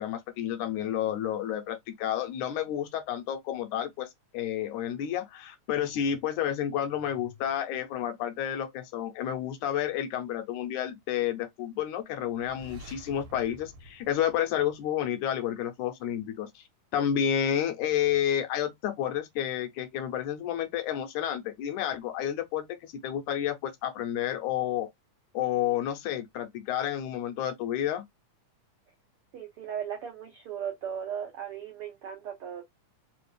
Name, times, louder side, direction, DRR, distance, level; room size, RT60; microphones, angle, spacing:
voice 1, 0.0-16.6 16.9-24.9 25.3-28.1, left 10 dB, 80° left, 2.0 m, -30 dB
sound 1, 12.3-15.2, right 1 dB, 65° right, 1.9 m, -49 dB
voice 2, 29.3-32.6, right 8 dB, 85° right, 1.2 m, -37 dB
4.9 x 2.4 x 3.2 m
omnidirectional pair, 3.7 m